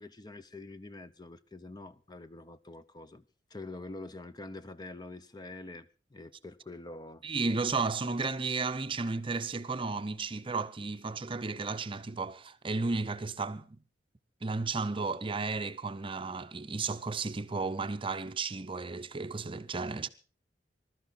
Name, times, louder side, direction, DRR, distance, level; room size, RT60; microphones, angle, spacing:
voice 1, 0.0-3.2 3.5-5.9 6.1-7.2, left 2 dB, 20° left, 0.6 m, -45 dB
voice 2, 7.2-13.8 14.4-20.1, right 4 dB, 30° right, 0.6 m, -33 dB
21.5 x 12.5 x 4.0 m
head